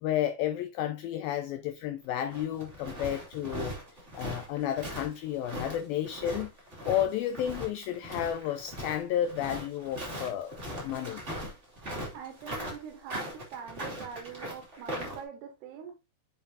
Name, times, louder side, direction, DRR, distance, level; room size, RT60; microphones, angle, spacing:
voice 1, 0.0-3.8 4.2-6.5 6.9-11.2, left 11 dB, 85° left, 2.1 m, -32 dB
sound 1, 2.0-15.2, equal, 20° right, 2.3 m, -39 dB
voice 2, 12.1-15.9, right 7 dB, 75° right, 3.2 m, -43 dB
7.5 x 7.1 x 2.7 m
omnidirectional pair, 4.9 m